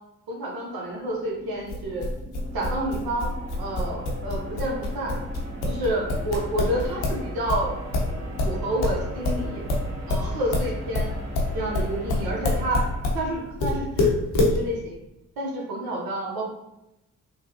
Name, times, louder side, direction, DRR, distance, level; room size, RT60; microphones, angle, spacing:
voice 1, 0.3-2.0 2.5-3.3 3.6-5.1 5.7-7.7 8.4-9.6 10.1-11.1 11.5-12.8 13.1-15.0 15.4-16.5, right 1 dB, 75° right, -2 dB, 0.9 m, -29 dB
sound 1, 0.8-13.9, right 1 dB, 50° right, 1.0 m, -39 dB
sound 2, 1.7-7.2 7.5-13.2 13.6-14.6, left 2 dB, 85° left, 0.8 m, -25 dB
3.7 x 2.2 x 2.7 m, 0.92 s
supercardioid pair, 45°, 36 cm